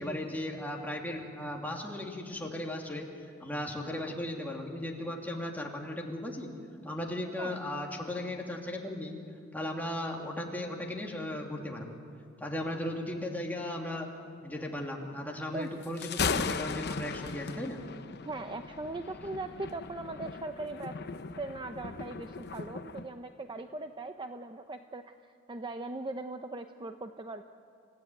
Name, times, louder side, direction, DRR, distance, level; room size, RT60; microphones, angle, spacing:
voice 1, 0.0-3.1 3.4-6.5 6.8-9.2 9.5-12.0 12.4-14.1 14.4-17.8, left 1 dB, 10° left, 0 dB, 2.8 m, -36 dB
Thunder, 15.8-23.1, left 5 dB, 55° left, 0.8 m, -37 dB
voice 2, 18.2-21.0 21.4-25.0 25.5-27.4, right 2 dB, 25° right, 7 dB, 0.7 m, -39 dB
29.0 x 16.0 x 9.1 m, 2.2 s
head